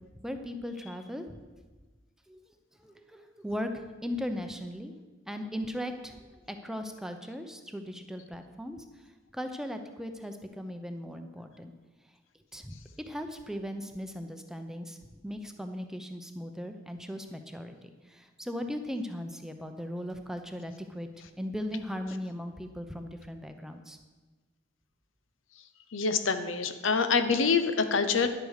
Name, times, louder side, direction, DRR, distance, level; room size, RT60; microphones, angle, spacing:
voice 1, 0.2-1.4 2.3-2.4 2.8-4.9 5.3-11.7 12.5-21.1 21.4-24.0, equal, 5° right, 6 dB, 0.7 m, -38 dB
voice 2, 25.9-28.3, left 5 dB, 85° left, 9 dB, 0.9 m, -26 dB
10.5 x 8.2 x 6.5 m, 1.3 s
head